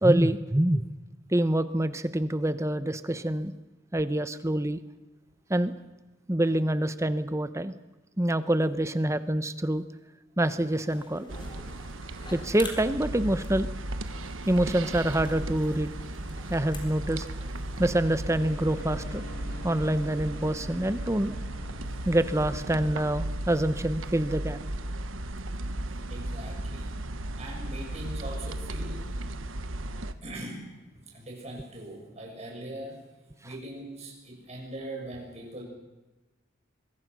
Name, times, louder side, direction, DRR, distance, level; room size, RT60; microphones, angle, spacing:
voice 1, 0.0-0.8 1.3-3.5 3.9-4.8 5.5-5.7 6.3-7.7 8.2-9.8 10.4-11.3 12.3-13.7 14.5-15.9 16.5-17.3 17.8-19.2 19.6-21.3 22.0-24.6, right 1 dB, 15° right, 12 dB, 0.9 m, -26 dB
sound 1, 10.4-18.0, left 2 dB, 25° left, 3.7 m, -47 dB
sound 2, 11.3-30.1, right 1 dB, 85° right, 1.3 m, -36 dB
sound 3, 18.3-33.8, left 1 dB, 50° left, 4.0 m, -50 dB
voice 2, 26.1-27.0 27.4-29.1 30.2-30.7 31.1-33.0 33.4-35.6, right 1 dB, 35° right, -1 dB, 6.9 m, -41 dB
24.5 x 22.5 x 6.3 m, 1.1 s
head